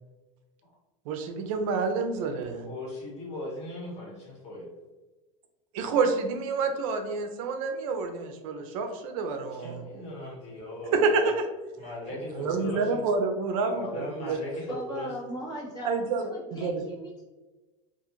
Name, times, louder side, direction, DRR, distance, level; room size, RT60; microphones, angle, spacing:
voice 1, 1.1-2.7 5.7-9.7 10.9-11.4 12.4-14.6 15.8-16.8, right 4 dB, 75° right, 5 dB, 0.5 m, -28 dB
voice 2, 2.6-4.7 9.6-11.3 11.8-13.0 13.7-15.1, left 1 dB, 40° left, -4 dB, 1.3 m, -38 dB
voice 3, 14.6-16.0 16.3-17.2, right 1 dB, 25° left, -5 dB, 1.0 m, -38 dB
2.4 x 2.3 x 2.9 m, 1.2 s
supercardioid pair, 130°, 18 cm